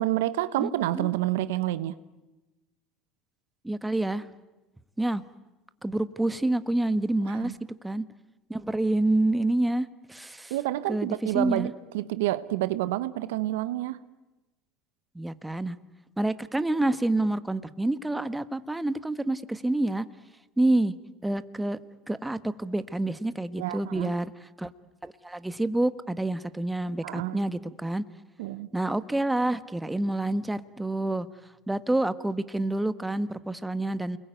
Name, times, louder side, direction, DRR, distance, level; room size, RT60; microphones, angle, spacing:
voice 1, 0.0-2.0 7.3-7.6 10.5-14.0 23.6-24.1 27.0-27.4 28.4-28.7, right 15 dB, 80° right, 14 dB, 1.0 m, -29 dB
voice 2, 0.6-1.1 3.6-4.3 5.0-5.2 5.8-7.6 7.8-8.0 8.5-10.5 10.9-11.7 15.1-15.8 16.2-20.0 20.6-20.9 21.2-21.8 22.1-24.3 24.6-24.7 25.0-28.0 28.7-31.3 31.7-34.2, right 2 dB, 10° right, 13 dB, 1.3 m, -28 dB
29.0 x 21.5 x 9.2 m, 1.1 s
hypercardioid pair, 85°, 0 cm